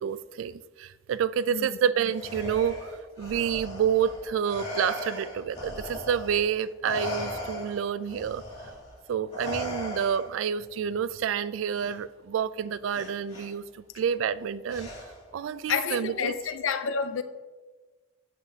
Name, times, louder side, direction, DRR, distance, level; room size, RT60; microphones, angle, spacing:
voice 1, 0.0-8.4 9.1-14.9 15.3-16.3, right 8 dB, 80° right, 0.3 m, -29 dB
Respiratory sounds, 2.1-6.5 6.8-10.5 11.7-11.9 12.9-13.5 14.7-15.3, left 1 dB, 35° left, 2.2 m, -38 dB
voice 2, 15.7-17.2, left 6 dB, 85° left, 0.4 m, -29 dB
9.1 x 7.5 x 2.7 m
head